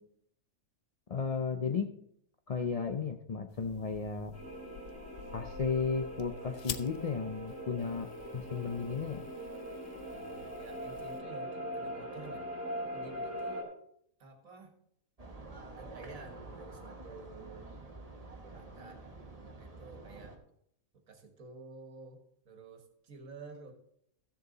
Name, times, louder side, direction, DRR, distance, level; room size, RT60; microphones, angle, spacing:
voice 1, 1.1-1.9 2.5-4.3 5.3-8.1 8.3-9.2, left 5 dB, 80° left, 6 dB, 0.3 m, -34 dB
sound 1, 3.5-11.2, left 9 dB, 60° left, 0.7 m, -48 dB
sound 2, 4.3-13.6, equal, 10° right, 3.3 m, -42 dB
voice 2, 10.1-12.5 12.9-13.8 14.2-14.8 15.7-17.7 18.5-19.0 19.4-20.4 20.9-23.7, right 3 dB, 70° right, 5 dB, 1.9 m, -51 dB
sound 3, 15.2-20.4, right 2 dB, 25° right, 1.2 m, -48 dB
14.0 x 6.8 x 3.9 m, 0.71 s
omnidirectional pair, 1.5 m